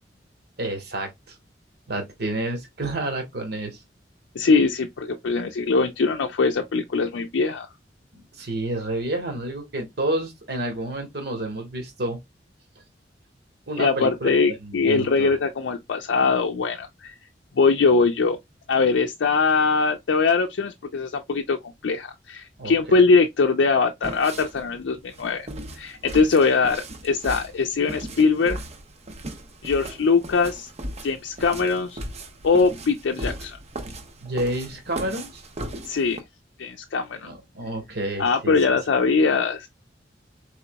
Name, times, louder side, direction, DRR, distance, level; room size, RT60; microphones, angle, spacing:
voice 1, 0.6-1.1 1.9-3.8 8.4-12.2 13.7-14.3 14.6-15.3 22.6-22.7 34.2-35.4 37.2-38.5, right 1 dB, 60° right, 1.4 m, -29 dB
voice 2, 4.4-7.7 13.8-17.1 17.6-18.4 18.7-21.6 21.8-28.6 29.6-30.7 31.0-32.0 32.4-33.6 35.9-36.2 36.6-37.3 38.2-39.7, left 4 dB, 90° left, 0.5 m, -22 dB
sound 1, 24.0-36.2, right 1 dB, 35° right, 0.6 m, -37 dB
3.9 x 3.5 x 2.2 m
head